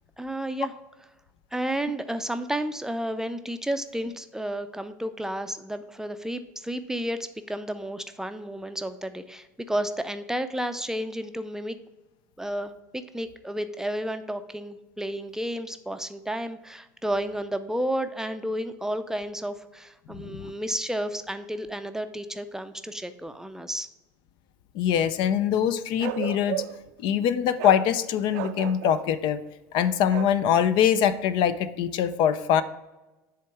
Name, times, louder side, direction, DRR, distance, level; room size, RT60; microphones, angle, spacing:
voice 1, 0.2-0.7 1.5-11.8 12.4-12.7 13.1-23.9, right 1 dB, 5° right, 9 dB, 0.5 m, -31 dB
voice 2, 20.1-20.5 24.7-26.6 27.0-29.4 29.7-32.6, left 9 dB, 60° left, 13 dB, 0.4 m, -23 dB
Bark, 26.0-26.9 27.6-27.9 28.3-29.1 30.1-30.4, right 13 dB, 70° right, 0.4 m, -33 dB
7.4 x 3.5 x 4.7 m, 1.1 s
hypercardioid pair, 85°, 9 cm